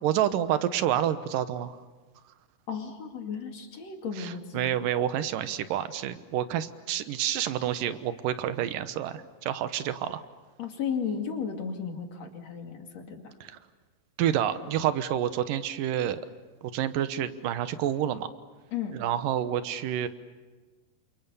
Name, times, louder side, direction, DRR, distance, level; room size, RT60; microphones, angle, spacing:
voice 1, 0.0-1.8 4.2-10.2 13.4-13.6 14.2-16.2 16.6-18.3 19.0-20.1, right 11 dB, 70° right, 11 dB, 2.6 m, -28 dB
voice 2, 2.7-4.7 10.6-13.3 18.7-19.0, left 6 dB, 50° left, 3 dB, 3.3 m, -34 dB
29.0 x 27.5 x 7.0 m, 1.3 s
omnidirectional pair, 4.3 m